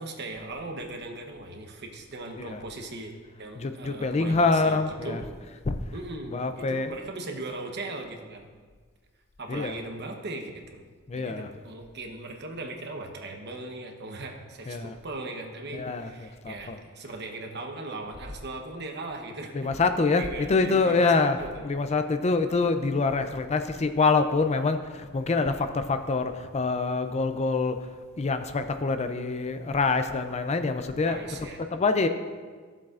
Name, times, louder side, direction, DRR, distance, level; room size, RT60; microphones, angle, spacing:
voice 1, 0.0-5.2 5.9-8.5 9.4-10.8 11.1-19.7 20.2-21.7 31.0-31.6, right 2 dB, 55° right, 3 dB, 1.0 m, -39 dB
voice 2, 3.6-5.2 5.7-5.8 6.3-6.9 9.5-9.8 11.1-11.5 14.7-15.0 15.7-16.8 19.5-21.4 21.6-27.8 28.2-31.2 31.7-32.1, left 3 dB, 30° left, 8 dB, 0.4 m, -25 dB
15.0 x 7.4 x 2.5 m, 1.5 s
head